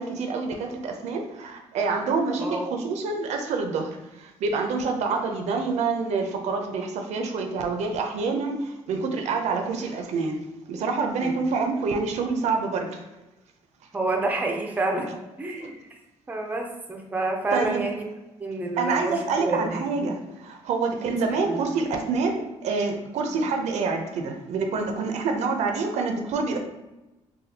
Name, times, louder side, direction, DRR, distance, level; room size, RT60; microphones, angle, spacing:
voice 1, 0.0-10.4 10.7-13.0 15.6-15.7 17.5-17.9 18.8-26.6, right 4 dB, 80° right, 4 dB, 0.5 m, -27 dB
voice 2, 13.9-15.1 15.4-15.8 16.3-18.1 18.4-19.8 21.5-21.6 23.3-23.4, right 2 dB, 15° right, 2 dB, 0.4 m, -28 dB
4.1 x 2.2 x 2.7 m, 1.0 s
cardioid pair, 140°, 12 cm